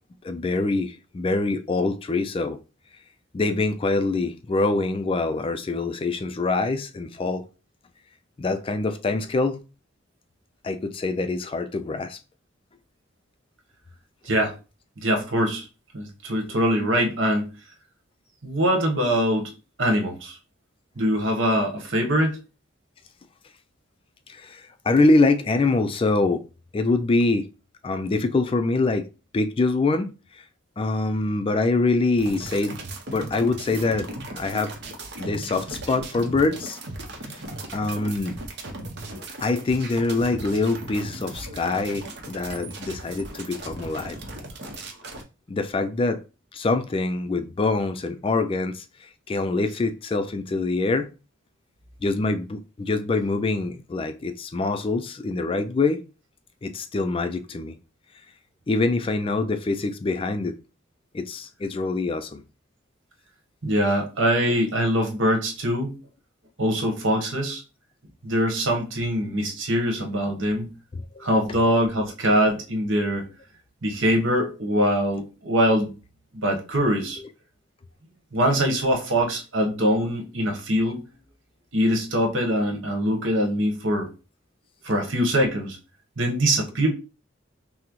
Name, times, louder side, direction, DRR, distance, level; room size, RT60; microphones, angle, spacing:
voice 1, 0.2-2.6 3.3-7.4 8.4-9.6 10.6-12.2 24.3-24.6 24.9-26.4 26.7-27.5 27.8-29.1 29.3-30.1 30.8-32.8 33.1-34.1 34.4-34.7 35.2-36.8 37.7-38.4 39.4-44.2 45.5-46.2 46.5-48.8 49.3-51.1 52.0-56.0 56.6-57.7 58.7-60.6 61.1-62.4 71.2-71.3, left 3 dB, 30° left, 0.3 m, -24 dB
voice 2, 15.0-15.7 15.9-17.5 18.4-19.5 19.8-20.4 21.0-22.4 63.6-66.0 66.6-67.6 68.2-70.7 71.2-73.3 73.8-75.9 76.3-77.2 78.3-81.0 81.7-84.1 84.8-85.8 86.2-86.9, equal, 75° right, 1.2 m, -23 dB
Newest Spitwad, 32.2-45.2, right 2 dB, 60° right, 0.8 m, -37 dB
5.8 x 2.1 x 3.0 m
head